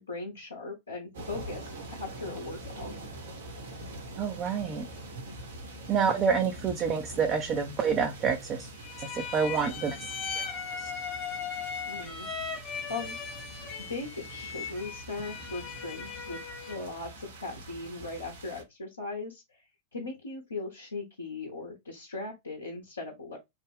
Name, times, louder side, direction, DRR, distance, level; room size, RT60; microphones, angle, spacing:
voice 1, 0.0-2.9 11.8-12.3 12.9-13.2 13.5-13.6 13.9-16.4 16.7-19.6 19.9-23.4, left 3 dB, 75° left, 0.9 m, -39 dB
sound 1, 1.1-18.6, right 1 dB, 65° right, 1.2 m, -44 dB
voice 2, 4.2-4.9 5.9-8.7 9.0-10.0 10.4-10.5 10.8-10.9, right 6 dB, 30° right, 0.5 m, -28 dB
sound 2, 8.8-16.9, left 6 dB, 25° left, 0.7 m, -38 dB
3.3 x 2.2 x 3.3 m
figure-of-eight pair, 90°, 0 cm